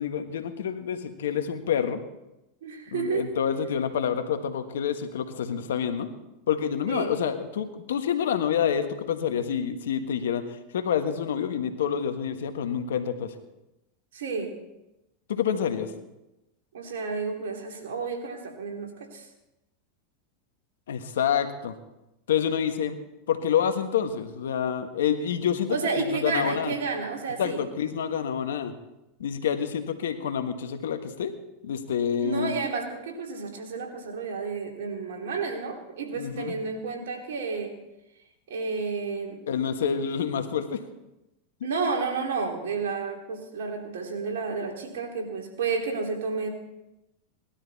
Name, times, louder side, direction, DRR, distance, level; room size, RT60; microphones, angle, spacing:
voice 1, 0.0-2.0 2.9-6.1 6.5-13.3 15.3-15.9 20.9-21.7 22.3-23.0 23.3-26.7 27.4-28.7 29.2-31.3 31.6-32.5 36.1-36.5 39.5-40.8, left 8 dB, 80° left, 8 dB, 1.5 m, -28 dB
voice 2, 2.6-3.3 6.9-7.1 14.1-14.5 16.7-19.3 25.7-27.6 32.2-37.7 38.5-39.4 41.6-46.5, right 4 dB, 80° right, 2 dB, 3.1 m, -31 dB
19.0 x 12.5 x 4.2 m, 0.93 s
hypercardioid pair, 105°, 0 cm